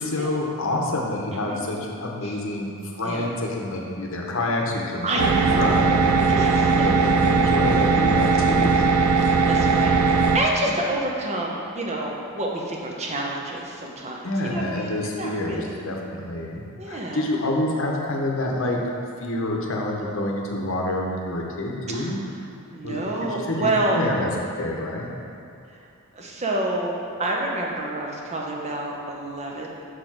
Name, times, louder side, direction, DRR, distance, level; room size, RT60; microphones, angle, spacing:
voice 1, 0.0-8.9 14.2-18.8 19.2-22.2 22.8-23.0 23.3-24.3 24.6-25.1, left 1 dB, 60° left, -1 dB, 0.8 m, -27 dB
voice 2, 5.0-5.8 6.3-7.0 8.5-8.6 9.2-15.8 16.8-17.3 21.9-22.1 22.7-24.0 26.1-29.8, right 2 dB, 30° right, -1 dB, 0.8 m, -28 dB
sound 1, 5.2-10.4, right 4 dB, 85° right, 0.4 m, -19 dB
6.4 x 4.6 x 4.6 m, 2.6 s
head